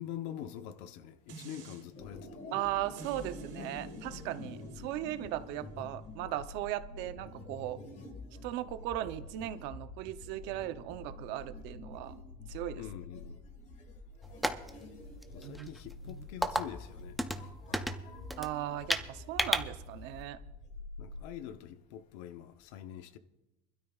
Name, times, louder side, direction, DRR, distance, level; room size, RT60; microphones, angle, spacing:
voice 1, 0.0-2.4 12.8-13.4 15.3-17.2 21.0-23.2, left 11 dB, 85° left, 0.8 m, -44 dB
sound 1, 1.3-1.8 3.0-8.1 8.6-8.7, right 4 dB, 40° right, 3.9 m, -53 dB
sound 2, 1.9-21.2, left 2 dB, 35° left, 1.6 m, -47 dB
voice 2, 2.5-7.8 8.4-12.1 12.5-12.8 15.4-15.7 16.1-16.3 18.4-20.4, right 14 dB, 55° right, 0.7 m, -37 dB
sound 3, 14.2-20.3, equal, ahead, 0.3 m, -35 dB
24.5 x 12.5 x 2.4 m
cardioid pair, 180°, 21 cm